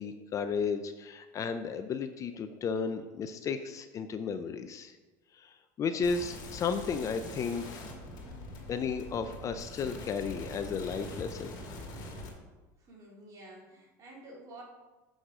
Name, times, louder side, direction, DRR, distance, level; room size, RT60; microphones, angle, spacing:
voice 1, 0.0-5.0 5.3-7.9 8.7-11.5, left 5 dB, 35° left, 9 dB, 0.5 m, -34 dB
sound 1, 6.0-12.3, left 1 dB, 50° left, 2.4 m, -44 dB
voice 2, 12.8-14.6, right 2 dB, 35° right, -3 dB, 2.8 m, -50 dB
6.4 x 6.3 x 4.8 m, 1.2 s
supercardioid pair, 110°, 9 cm